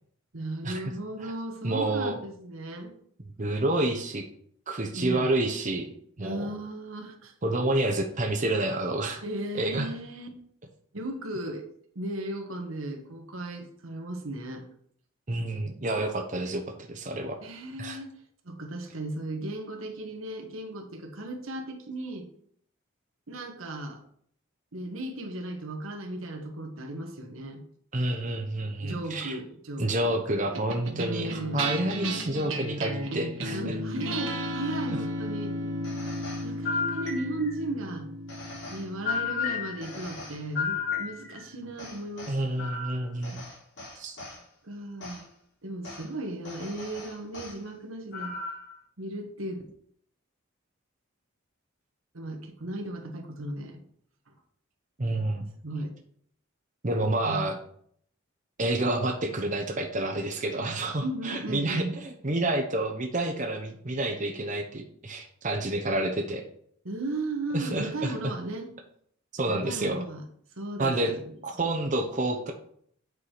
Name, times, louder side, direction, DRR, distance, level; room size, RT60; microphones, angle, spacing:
voice 1, 0.3-2.9 4.9-5.3 6.2-7.3 9.2-10.3 10.9-11.6 11.9-14.6 17.4-18.1 18.4-22.3 23.3-24.0 24.7-27.6 28.8-30.4 30.9-31.6 33.5-35.6 36.4-38.1 38.7-42.7 44.6-45.2 45.6-48.4 49.0-49.6 52.1-53.8 54.3-54.4 55.6-55.9 57.2-57.5 61.0-62.0 66.8-68.7 69.4-70.2 70.6-71.3, right 1 dB, 85° right, 4 dB, 1.5 m, -36 dB
voice 2, 1.6-2.1 3.4-4.2 4.7-5.9 6.2-6.5 7.4-9.2 9.5-9.9 15.3-16.6 16.9-17.4 17.8-18.0 27.9-29.4 29.8-33.7 42.3-43.4 44.0-44.2 55.0-55.5 56.8-57.6 58.6-66.4 67.5-68.3 69.3-70.0 70.8-71.1 71.4-72.5, right 2 dB, 40° right, 2 dB, 0.9 m, -29 dB
sound 1, 30.5-41.1, equal, 70° right, 1.3 m, -35 dB
sound 2, 35.8-37.6 38.3-41.4 41.8-44.4 45.0-45.2 45.8-46.0 46.4-47.6 48.1-48.7, left 5 dB, 60° left, 3.9 m, -34 dB
8.4 x 4.8 x 4.9 m, 0.64 s
head